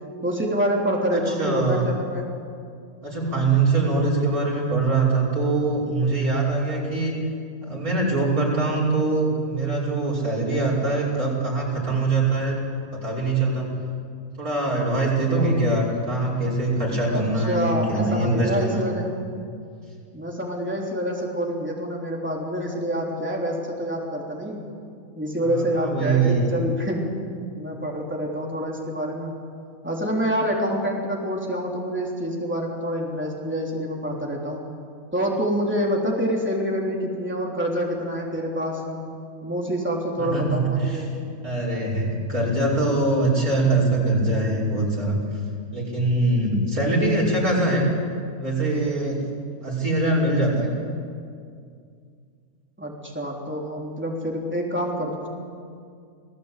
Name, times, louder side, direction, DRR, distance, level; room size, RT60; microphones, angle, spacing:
voice 1, 0.2-2.3 15.4-15.5 17.1-19.1 20.1-24.6 25.2-27.2 27.6-29.3 29.8-34.6 35.1-39.0 39.4-41.1 52.8-55.3, equal, 10° right, -2 dB, 3.6 m, -27 dB
voice 2, 1.1-1.8 3.0-7.2 7.6-12.6 12.9-13.7 14.4-18.9 25.4-26.5 40.2-41.0 41.4-45.2 45.7-47.9 48.4-49.2 49.6-50.7, right 2 dB, 85° right, -3 dB, 6.1 m, -23 dB
29.0 x 18.0 x 8.4 m, 2.3 s
omnidirectional pair, 1.5 m